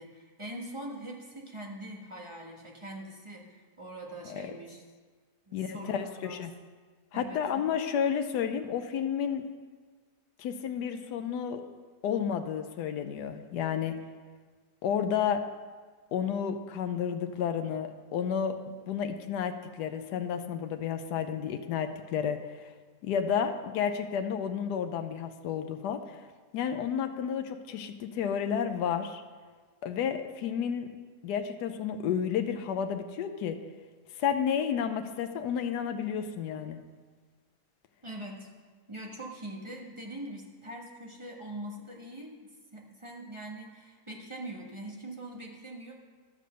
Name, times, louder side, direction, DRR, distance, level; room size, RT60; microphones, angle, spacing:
voice 1, 0.0-4.8 5.5-6.4 7.1-7.6 38.0-38.5 38.9-42.4 42.7-45.9, right 1 dB, 20° right, -1 dB, 1.3 m, -43 dB
voice 2, 5.5-6.5 7.1-9.5 10.4-11.6 12.0-14.0 14.8-15.4 16.1-18.6 18.9-22.7 23.0-26.2 26.5-29.2 29.8-30.9 31.2-33.6 34.2-36.8, left 8 dB, 85° left, 7 dB, 1.2 m, -31 dB
12.5 x 6.8 x 6.4 m, 1.5 s
omnidirectional pair, 1.7 m